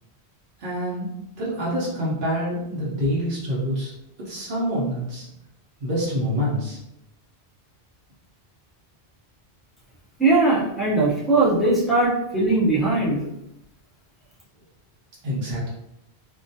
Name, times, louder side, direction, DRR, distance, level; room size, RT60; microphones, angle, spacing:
voice 1, 0.6-1.1 1.4-3.9 4.2-5.3 5.8-6.8 15.2-15.7, equal, 60° right, -7 dB, 0.8 m, -26 dB
voice 2, 10.2-13.2, right 2 dB, ahead, -7 dB, 0.5 m, -20 dB
2.3 x 2.2 x 2.6 m, 0.81 s
omnidirectional pair, 1.1 m